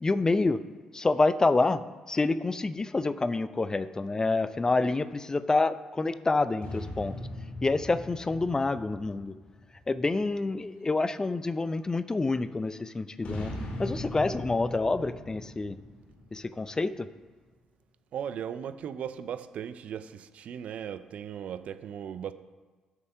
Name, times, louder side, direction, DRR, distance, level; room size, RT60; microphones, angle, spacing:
voice 1, 0.0-0.6 0.9-1.8 2.1-7.1 7.6-9.3 9.9-13.5 13.8-15.8 16.3-17.1, left 3 dB, 25° left, 14 dB, 0.5 m, -27 dB
sound 1, 6.6-10.3 13.2-17.0, left 1 dB, 55° left, 2.3 m, -40 dB
voice 2, 18.1-22.3, right 8 dB, 60° right, 13 dB, 0.5 m, -37 dB
6.9 x 6.7 x 6.7 m, 1.3 s
hypercardioid pair, 45°, 2 cm